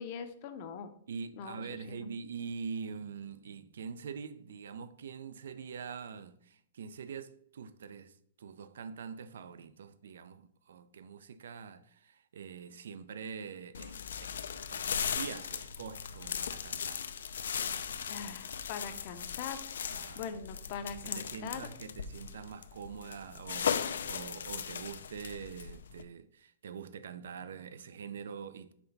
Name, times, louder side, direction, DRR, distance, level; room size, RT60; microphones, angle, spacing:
voice 1, 0.0-0.9 1.3-2.1 18.1-21.7, left 6 dB, 30° left, 0.6 m, -42 dB
voice 2, 1.1-14.3 14.7-17.1 19.9-20.2 21.1-28.7, right 6 dB, 70° right, 0.4 m, -44 dB
sound 1, 13.7-26.0, left 7 dB, 85° left, 0.5 m, -38 dB
5.9 x 3.4 x 5.3 m
hypercardioid pair, 175°, 0 cm